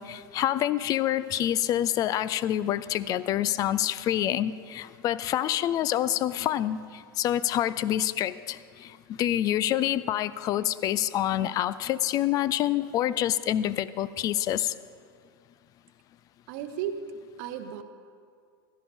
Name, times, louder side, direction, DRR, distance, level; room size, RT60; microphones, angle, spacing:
voice 1, 0.0-14.7, left 12 dB, 30° left, 17 dB, 0.4 m, -27 dB
voice 2, 16.5-17.0 17.4-17.8, right 9 dB, 50° right, 7 dB, 0.8 m, -34 dB
15.5 x 11.5 x 3.6 m, 2.1 s
figure-of-eight pair, 95°, 12 cm